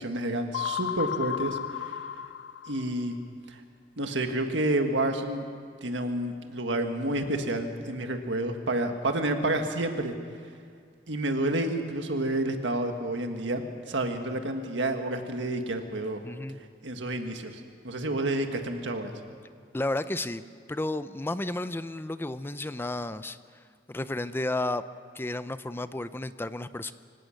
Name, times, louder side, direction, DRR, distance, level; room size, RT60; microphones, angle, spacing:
voice 1, 0.0-1.9 2.7-3.2 3.5-3.6 4.0-5.4 5.8-10.1 11.1-16.2 16.8-19.1, right 1 dB, 80° right, 5 dB, 1.7 m, -29 dB
sound 1, 0.5-3.1, left 8 dB, 75° left, 0.6 m, -33 dB
voice 2, 16.2-16.6 19.7-20.4 20.7-23.4 23.9-24.8 25.2-26.9, left 2 dB, 10° left, 13 dB, 0.5 m, -32 dB
25.0 x 17.0 x 6.5 m, 2.2 s
head